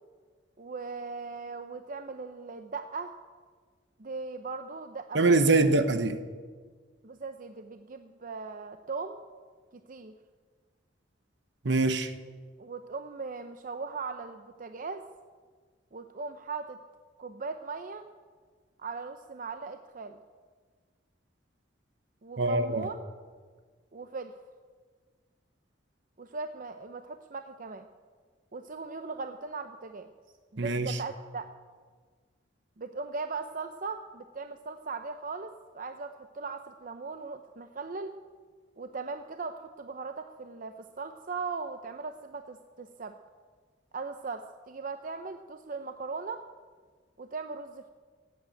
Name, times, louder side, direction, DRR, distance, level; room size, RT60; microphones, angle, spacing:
voice 1, 0.6-3.2 4.0-5.4 7.0-9.2 9.7-10.1 12.6-15.0 15.9-16.8 17.2-18.1 18.8-20.2 22.2-23.1 23.9-24.3 26.2-27.9 28.5-30.1 30.5-31.5 32.8-38.1 38.8-43.1 43.9-46.4 47.2-47.9, right 4 dB, 45° right, 0.7 m, -39 dB
voice 2, 5.1-6.2 11.6-12.1 22.4-22.9 30.6-31.0, right 3 dB, 65° right, 1.1 m, -24 dB
16.5 x 8.3 x 9.0 m
head